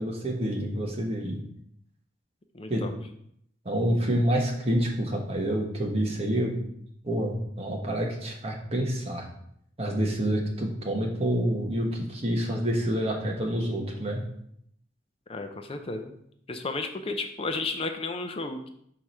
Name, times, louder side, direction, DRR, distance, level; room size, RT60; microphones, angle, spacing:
voice 1, 0.0-1.4 2.7-2.8 3.6-6.6 7.0-9.2 9.8-14.2, equal, 35° right, 0 dB, 1.3 m, -28 dB
voice 2, 2.5-2.9 15.3-16.1 16.5-18.7, left 3 dB, 30° left, 6 dB, 0.5 m, -33 dB
4.8 x 4.6 x 5.5 m, 0.70 s
head